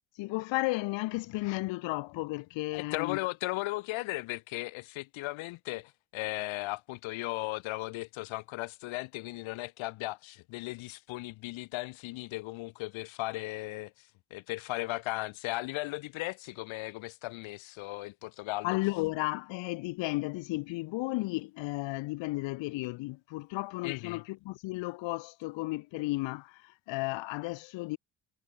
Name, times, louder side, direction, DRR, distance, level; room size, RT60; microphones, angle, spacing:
voice 1, 0.2-3.2 18.6-28.0, left 21 dB, 70° left, 0.7 m, -33 dB
voice 2, 2.7-18.8 23.8-24.2, left 21 dB, 90° left, 1.8 m, -37 dB
cardioid pair, 145°, 46 cm